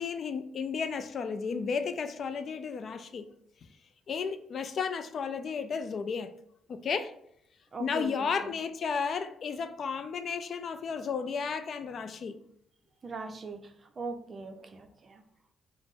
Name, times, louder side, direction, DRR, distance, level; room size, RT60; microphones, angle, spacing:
voice 1, 0.0-3.3 4.1-6.3 6.7-7.1 7.8-12.4, left 5 dB, 55° left, 0.3 m, -33 dB
voice 2, 7.7-8.5 13.0-15.2, right 3 dB, 40° right, 0.5 m, -41 dB
3.5 x 2.0 x 3.9 m
cardioid pair, 90°, 0 cm